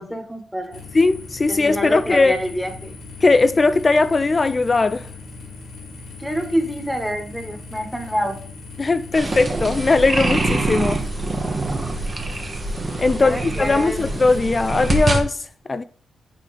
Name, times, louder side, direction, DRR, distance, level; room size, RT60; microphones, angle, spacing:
voice 1, 0.0-0.8 1.6-2.9 6.2-8.4 13.2-14.0, equal, ahead, 1.5 m, -26 dB
sound 1, 0.7-15.2, left 3 dB, 85° left, 1.9 m, -39 dB
voice 2, 0.9-2.3 3.2-5.1 8.8-11.0 13.0-15.8, left 3 dB, 30° left, 0.3 m, -19 dB
sound 2, 9.1-15.2, right 2 dB, 30° right, 1.1 m, -24 dB
7.3 x 4.5 x 4.3 m
cardioid pair, 110°, 0 cm